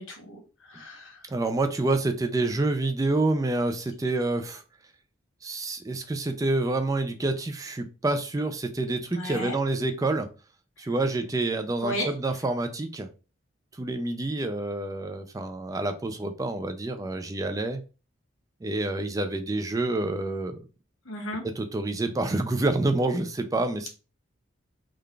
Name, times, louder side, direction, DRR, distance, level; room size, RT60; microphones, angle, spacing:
voice 1, 0.0-1.2 9.1-9.6 11.8-12.1 21.0-21.4, left 1 dB, 85° left, 1 dB, 1.4 m, -34 dB
voice 2, 1.3-4.6 5.4-10.3 10.8-13.1 13.8-17.8 18.6-20.7 21.6-23.9, right 2 dB, 15° right, 7 dB, 0.3 m, -27 dB
3.8 x 2.3 x 3.2 m, 0.33 s
head